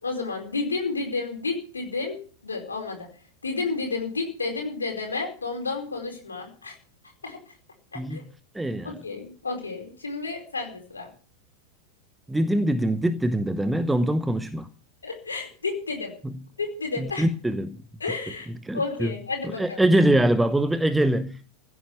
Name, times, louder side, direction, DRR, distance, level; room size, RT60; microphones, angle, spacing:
voice 1, 0.0-2.2 2.4-3.1 3.4-6.7 7.2-7.4 7.9-8.2 8.8-11.1 15.0-16.1 16.6-17.3 18.0-19.8, left 3 dB, 75° left, 4.6 m, -31 dB
voice 2, 8.5-8.9 12.3-14.7 16.2-16.3 17.0-17.8 18.6-19.1 19.4-21.4, right 1 dB, 5° right, 0.9 m, -23 dB
16.0 x 9.8 x 7.0 m
figure-of-eight pair, 90°, 0 cm